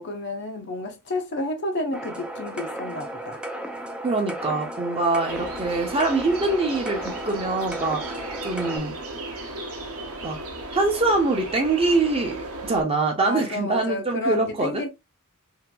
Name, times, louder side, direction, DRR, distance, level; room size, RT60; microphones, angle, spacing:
voice 1, 0.0-3.4 13.2-14.9, left 2 dB, 50° left, 0.6 m, -30 dB
sound 1, 1.9-8.8, right 1 dB, 5° right, 0.3 m, -35 dB
voice 2, 4.0-8.9 10.2-10.4 10.7-14.9, right 3 dB, 25° right, 0.7 m, -24 dB
sound 2, 5.3-12.8, right 2 dB, 65° right, 0.8 m, -35 dB
2.8 x 2.5 x 2.3 m
head